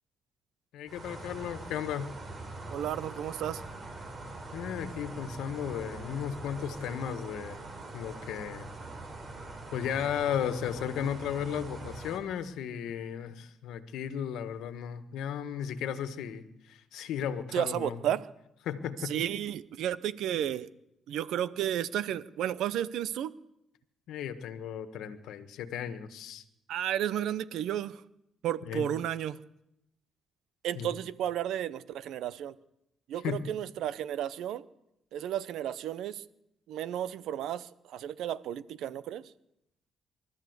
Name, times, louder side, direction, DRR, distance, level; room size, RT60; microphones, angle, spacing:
voice 1, 0.7-2.1 4.5-7.6 7.9-8.7 9.7-18.0 18.6-19.1 24.1-26.4 28.7-28.9 30.7-30.9 33.2-33.4, left 9 dB, 85° left, 10 dB, 1.5 m, -35 dB
sound 1, 0.9-12.2, right 2 dB, 40° right, 5.0 m, -43 dB
voice 2, 2.7-3.6 17.5-18.2 19.0-20.7 21.1-23.3 26.7-28.0 28.4-29.4 30.6-32.5 33.1-34.6 35.1-36.2 36.7-39.2, right 11 dB, 80° right, 17 dB, 0.8 m, -33 dB
25.0 x 13.5 x 8.1 m, 0.83 s
cardioid pair, 90°, 0 cm